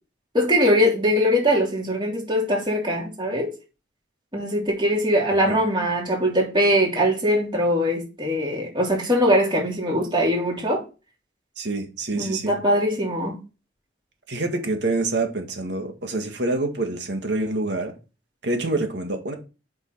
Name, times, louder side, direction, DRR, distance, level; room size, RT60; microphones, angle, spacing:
voice 1, 0.3-3.5 4.3-10.8 12.1-13.3, equal, 25° right, 3.0 m, -21 dB
voice 2, 11.6-12.6 14.3-17.9 18.4-19.3, right 2 dB, 70° right, 1.9 m, -26 dB
7.9 x 5.6 x 4.2 m
head